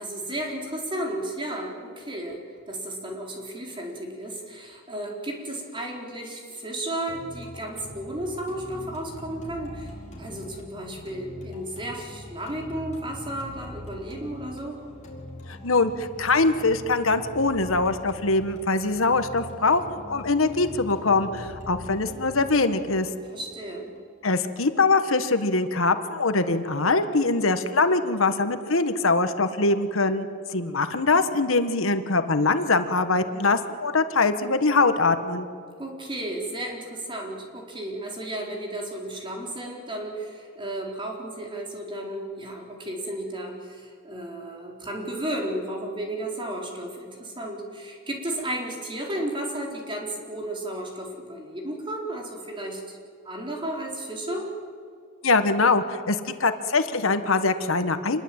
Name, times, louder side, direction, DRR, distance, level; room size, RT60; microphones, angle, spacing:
voice 1, 0.0-2.4 2.7-9.9 10.2-14.8 23.3-23.9 35.8-53.0 53.2-54.5, right 1 dB, 25° right, 0 dB, 4.4 m, -33 dB
sound 1, 7.1-25.1, left 1 dB, 35° left, 4.7 m, -42 dB
voice 2, 15.6-23.1 24.2-35.5 55.2-58.2, left 3 dB, 80° left, 9 dB, 1.5 m, -23 dB
27.0 x 21.5 x 8.9 m, 2.2 s
head